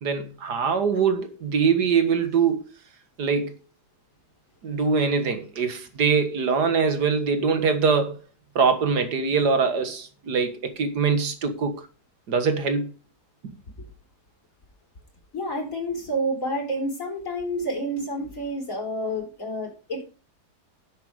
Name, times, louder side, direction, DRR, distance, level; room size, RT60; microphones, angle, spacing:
voice 1, 0.0-2.7 3.2-3.6 4.6-8.2 8.6-11.9 12.3-12.9 13.4-13.5, right 5 dB, 65° right, 2.1 m, -23 dB
voice 2, 15.3-20.1, equal, 45° left, 4.7 m, -29 dB
10.5 x 8.3 x 4.9 m
omnidirectional pair, 1.9 m